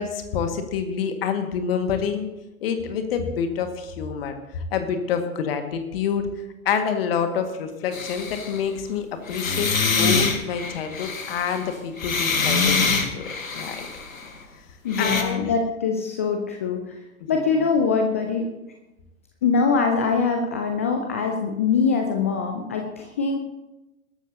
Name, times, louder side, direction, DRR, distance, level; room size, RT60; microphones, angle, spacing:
voice 1, 0.0-2.3 2.6-6.2 6.7-13.9 15.0-15.5 17.2-17.3, left 7 dB, 45° left, 6 dB, 1.9 m, -27 dB
sound 1, 7.9-8.6 9.3-14.3 14.9-15.2, left 4 dB, 70° left, 1.8 m, -25 dB
voice 2, 14.8-17.0 17.3-18.4 19.4-23.4, left 5 dB, 10° left, 3 dB, 0.3 m, -23 dB
21.5 x 12.5 x 2.8 m, 0.98 s
figure-of-eight pair, 110°, 41 cm